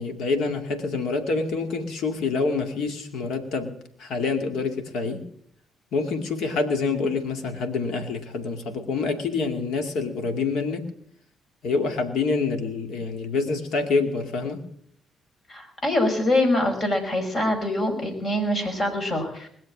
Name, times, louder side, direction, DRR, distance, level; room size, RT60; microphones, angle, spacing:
voice 1, 0.0-5.2 5.9-10.9 11.6-14.6, left 4 dB, 70° left, 7 dB, 2.3 m, -26 dB
voice 2, 15.5-19.5, left 1 dB, 50° left, 4 dB, 5.6 m, -24 dB
21.0 x 7.4 x 8.5 m, 0.67 s
hypercardioid pair, 50°, 0 cm